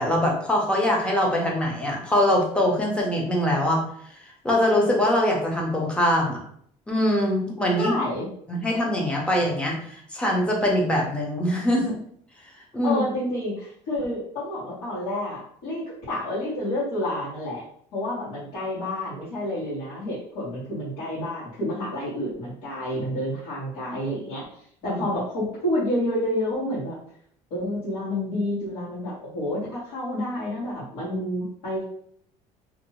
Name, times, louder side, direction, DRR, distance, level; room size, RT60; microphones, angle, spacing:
voice 1, 0.0-3.8 4.1-6.4 6.9-8.1 8.5-11.9 12.7-13.0 24.8-25.0, left 1 dB, 10° left, -2 dB, 0.6 m, -23 dB
voice 2, 7.7-8.3 12.8-17.6 17.9-24.4 24.8-27.0 27.5-31.8, left 1 dB, 90° left, -10 dB, 1.5 m, -29 dB
2.6 x 2.5 x 3.0 m, 0.64 s
cardioid pair, 165°, 13 cm